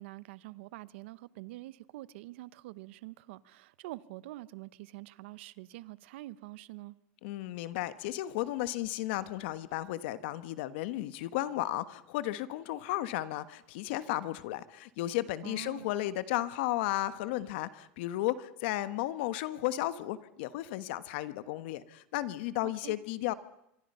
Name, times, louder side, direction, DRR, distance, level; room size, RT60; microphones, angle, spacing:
voice 1, 0.0-6.9 15.4-15.9 22.6-23.0, right 18 dB, 80° right, 0.8 m, -46 dB
voice 2, 7.2-23.3, left 15 dB, 70° left, 1.3 m, -34 dB
25.5 x 24.0 x 5.6 m
supercardioid pair, 165°, 6 cm